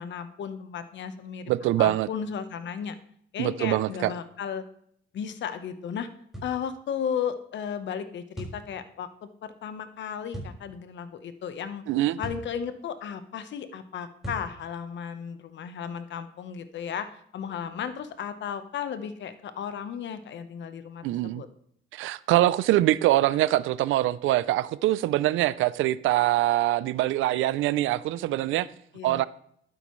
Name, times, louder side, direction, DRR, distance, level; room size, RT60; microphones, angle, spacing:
voice 1, 0.0-1.5 1.8-3.0 3.3-4.6 5.1-6.1 6.4-11.8 12.2-21.5 28.9-29.3, left 7 dB, 65° left, 1.1 m, -35 dB
voice 2, 1.5-2.1 3.4-4.1 11.9-12.2 21.0-21.4 21.9-28.7 29.0-29.2, right 15 dB, 90° right, 0.5 m, -24 dB
sound 1, 6.3-6.6 8.4-8.6 10.3-10.6 12.2-12.5 14.2-14.5, equal, ahead, 5.0 m, -37 dB
12.0 x 9.1 x 3.2 m
cardioid pair, 90°, 20 cm